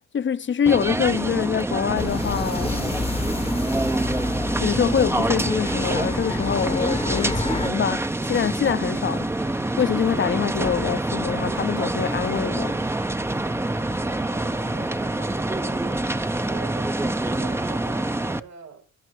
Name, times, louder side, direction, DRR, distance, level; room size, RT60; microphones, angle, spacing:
voice 1, 0.1-3.1 4.6-12.8, left 8 dB, 40° left, 0.7 m, -25 dB
sound 1, 0.7-18.4, right 2 dB, 10° right, 0.7 m, -26 dB
sound 2, 2.0-7.7, left 3 dB, 20° left, 1.0 m, -30 dB
voice 2, 14.1-15.9 16.5-18.9, right 7 dB, 65° right, 2.8 m, -44 dB
21.0 x 10.5 x 3.1 m
cardioid pair, 90°, 30 cm